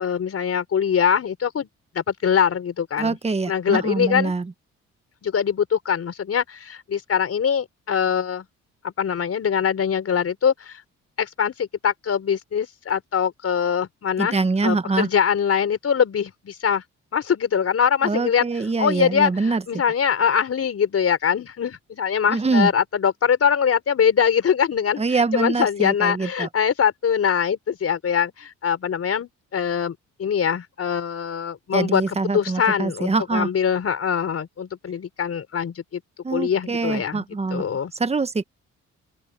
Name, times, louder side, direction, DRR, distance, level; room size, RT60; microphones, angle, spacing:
voice 1, 0.0-1.7 1.9-3.2 3.5-4.3 5.2-8.4 8.8-10.8 11.2-16.8 17.1-18.5 18.8-36.0 36.3-37.2 37.5-37.9, left 7 dB, 50° left, 5.0 m, -23 dB
voice 2, 3.0-4.5 14.2-15.1 18.0-19.6 22.3-22.7 25.0-26.5 31.7-33.5 36.2-38.4, right 3 dB, 20° right, 1.3 m, -24 dB
open air
cardioid pair, 90°, 30 cm